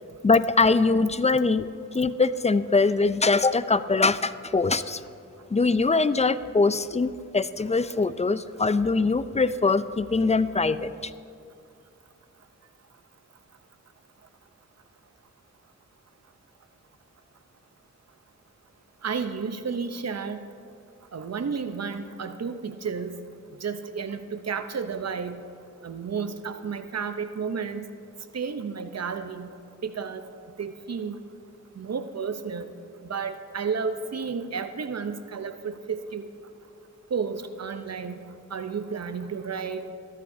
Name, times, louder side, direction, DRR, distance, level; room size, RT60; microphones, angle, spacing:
voice 1, 0.2-1.6 1.9-5.0 5.5-11.1, left 3 dB, 25° left, 14 dB, 0.4 m, -22 dB
voice 2, 19.0-20.5 21.1-23.2 23.6-25.4 25.8-27.8 28.3-29.5 29.8-30.3 30.6-31.2 31.8-32.7 33.0-36.3 37.1-38.2 38.5-39.9, right 5 dB, 60° right, 9 dB, 0.8 m, -32 dB
14.0 x 13.5 x 2.7 m, 2.5 s
cardioid pair, 50°, 29 cm